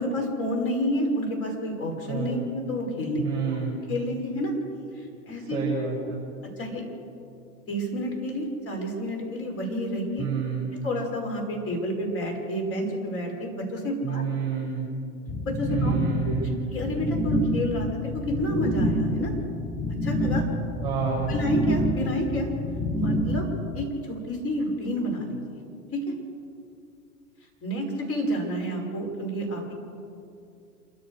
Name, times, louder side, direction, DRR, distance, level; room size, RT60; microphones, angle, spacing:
voice 1, 0.0-3.2 3.9-4.5 5.0-5.6 6.6-6.8 7.7-10.3 10.8-14.2 15.4-15.9 16.2-16.3 16.7-19.3 20.0-20.4 21.3-22.5 22.9-23.4 23.7-25.6 25.9-26.0 27.6-29.7, equal, 30° left, 0 dB, 6.2 m, -29 dB
voice 2, 2.1-2.4 3.2-3.7 5.5-6.2 10.2-10.7 14.0-14.9 15.7-16.6 20.8-21.4, right 6 dB, 10° right, -3 dB, 6.8 m, -29 dB
sound 1, 15.3-23.8, left 1 dB, 5° left, 0.9 m, -28 dB
28.5 x 14.0 x 6.7 m, 2.5 s
hypercardioid pair, 110°, 43 cm